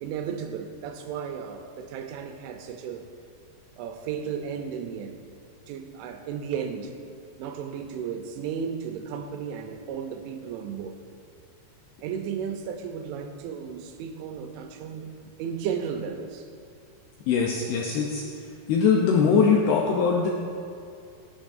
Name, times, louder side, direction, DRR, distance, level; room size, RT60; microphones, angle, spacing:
voice 1, 0.0-3.0 3.8-5.2 5.7-6.9 7.4-11.0 12.0-15.1 15.4-16.5, right 7 dB, 85° right, 5 dB, 3.2 m, -34 dB
voice 2, 17.3-18.2 18.7-20.3, left 5 dB, 80° left, -1 dB, 2.3 m, -21 dB
16.5 x 9.5 x 2.6 m, 2.5 s
omnidirectional pair, 5.4 m